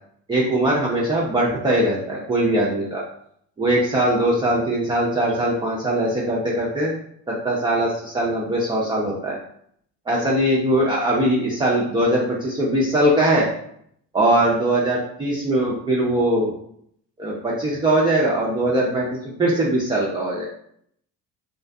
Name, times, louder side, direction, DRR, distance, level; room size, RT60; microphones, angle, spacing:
voice 1, 0.3-3.1 3.6-6.9 7.3-9.4 10.1-13.5 14.1-16.5 17.2-19.1 19.4-20.5, right 1 dB, 10° right, -4 dB, 0.4 m, -21 dB
2.4 x 2.4 x 2.2 m, 0.68 s
hypercardioid pair, 55°, 50 cm